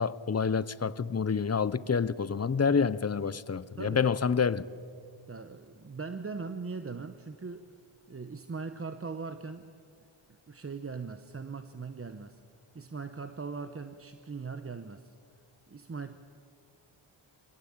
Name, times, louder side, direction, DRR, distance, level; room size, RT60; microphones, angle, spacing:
voice 1, 0.0-4.7, left 6 dB, 30° left, 0.6 m, -28 dB
voice 2, 3.8-4.1 5.3-7.7 8.1-9.7 10.5-12.4 12.7-15.1 15.7-16.1, right 4 dB, 25° right, 0.9 m, -40 dB
24.5 x 17.5 x 8.8 m
wide cardioid pair, 85°, 50 cm